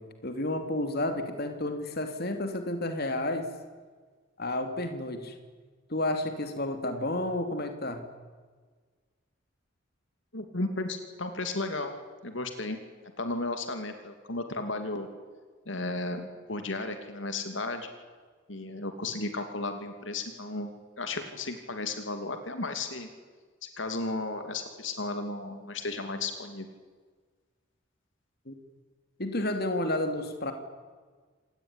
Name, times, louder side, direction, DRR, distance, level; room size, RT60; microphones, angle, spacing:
voice 1, 0.0-3.5 4.4-5.3 5.9-8.1 28.5-28.6 29.2-30.5, left 1 dB, 50° left, 7 dB, 2.9 m, -31 dB
voice 2, 10.3-11.9 12.2-12.8 13.2-15.1 15.7-17.9 18.5-20.7 21.0-23.1 23.6-26.7, left 2 dB, 65° left, 7 dB, 2.8 m, -34 dB
27.5 x 19.5 x 9.9 m, 1.5 s
head